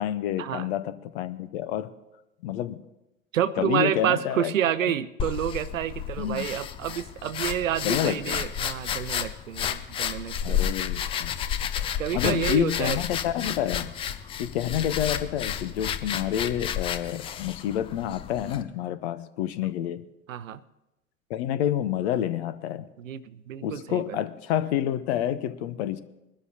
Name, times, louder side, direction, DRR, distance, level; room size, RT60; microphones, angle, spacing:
voice 1, 0.0-1.9 2.4-2.8 3.6-4.5 6.2-6.5 7.8-8.4 10.4-11.4 12.1-13.9 14.4-20.0 21.3-22.9 23.6-26.0, left 11 dB, 50° left, 14 dB, 0.9 m, -28 dB
voice 2, 3.3-10.7 12.0-13.0 20.3-20.6 23.0-24.2, right 10 dB, 70° right, 17 dB, 0.7 m, -29 dB
sound 1, 5.2-18.6, left 9 dB, 15° left, 0.4 m, -31 dB
22.0 x 12.5 x 2.8 m, 0.95 s
figure-of-eight pair, 85°, 41 cm